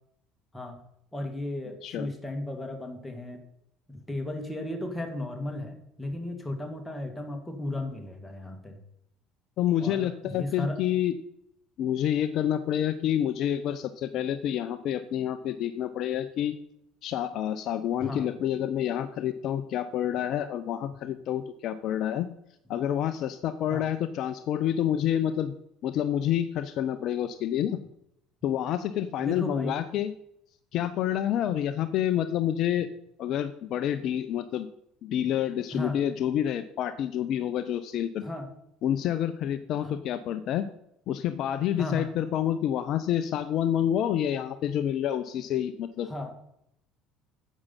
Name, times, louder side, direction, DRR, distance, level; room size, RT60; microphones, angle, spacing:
voice 1, 1.1-3.4 3.9-8.8 9.8-10.8 18.0-18.3 23.7-23.9 29.2-29.7 35.7-36.0 38.2-38.5 39.8-40.0 41.8-42.1 46.1-46.3, left 1 dB, 5° left, 3 dB, 2.3 m, -35 dB
voice 2, 9.6-11.1 11.8-16.6 17.0-22.3 22.7-25.5 25.8-27.8 28.4-30.1 30.7-32.9 33.2-34.7 35.0-38.2 38.8-40.7 41.1-46.1, left 10 dB, 50° left, 12 dB, 0.5 m, -28 dB
9.6 x 7.2 x 5.6 m, 0.77 s
figure-of-eight pair, 60°, 0 cm